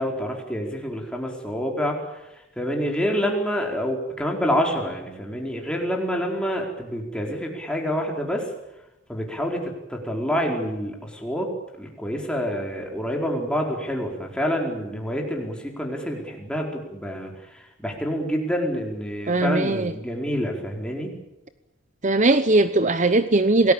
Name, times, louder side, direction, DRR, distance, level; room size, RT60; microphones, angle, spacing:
voice 1, 0.0-2.2 2.6-8.5 9.1-21.2, equal, 5° left, 0 dB, 4.7 m, -27 dB
voice 2, 19.3-19.9 22.0-23.7, right 2 dB, 40° right, 11 dB, 0.9 m, -19 dB
27.5 x 19.5 x 8.8 m, 0.93 s
head